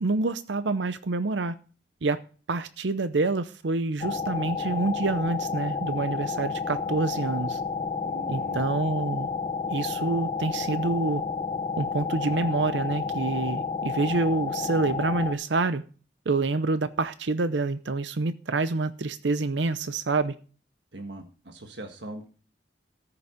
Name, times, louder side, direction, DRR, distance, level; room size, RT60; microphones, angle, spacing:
voice 1, 0.0-1.5 2.0-2.2 2.5-7.6 8.3-9.3 9.7-11.2 11.8-15.8 16.3-20.3, right 3 dB, 90° right, 0.7 m, -27 dB
sound 1, 4.0-15.3, left 5 dB, 30° left, 0.8 m, -31 dB
voice 2, 8.0-8.7 20.9-22.3, right 1 dB, 70° right, 1.6 m, -41 dB
14.0 x 7.0 x 5.1 m
head